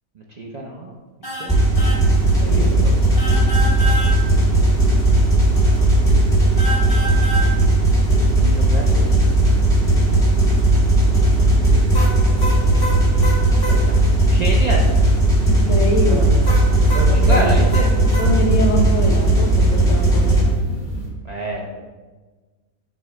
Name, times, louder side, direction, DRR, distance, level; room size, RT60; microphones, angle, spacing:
voice 1, 0.1-1.0 1.2-1.5 2.6-2.9 3.7-4.1 8.4-9.2 11.7-11.8 13.7-15.0 16.1-16.3 16.9-17.9 21.2-21.8, right 1 dB, 65° right, -2 dB, 0.4 m, -28 dB
sound 1, 1.2-1.5 1.8-2.0 3.2-4.1 6.6-7.5 11.9-13.8 16.4-18.3, equal, 20° left, 0.9 m, -27 dB
sound 2, 1.5-20.4, right 1 dB, ahead, 1.7 m, -16 dB
sound 3, 1.8-21.1, right 2 dB, 35° left, 1.4 m, -32 dB
voice 2, 15.4-16.3 17.1-17.6 18.2-20.5, left 1 dB, 60° left, 1 dB, 1.2 m, -24 dB
6.7 x 3.2 x 4.8 m, 1.3 s
omnidirectional pair, 1.5 m